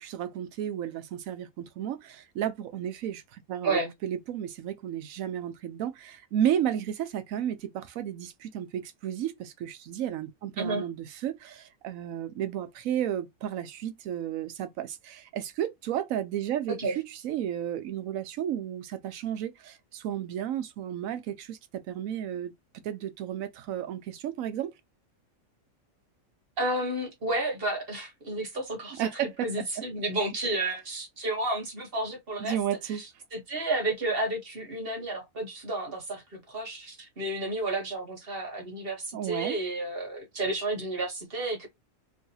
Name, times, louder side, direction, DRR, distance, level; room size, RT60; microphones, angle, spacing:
voice 1, 0.0-21.6 21.9-22.5 22.8-24.7 29.0-29.5 32.4-33.0 39.1-39.6, right 10 dB, 75° right, 1.0 m, -33 dB
voice 2, 26.6-32.6 33.3-41.7, right 2 dB, 45° right, 1.3 m, -31 dB
3.1 x 2.7 x 2.7 m
omnidirectional pair, 1.5 m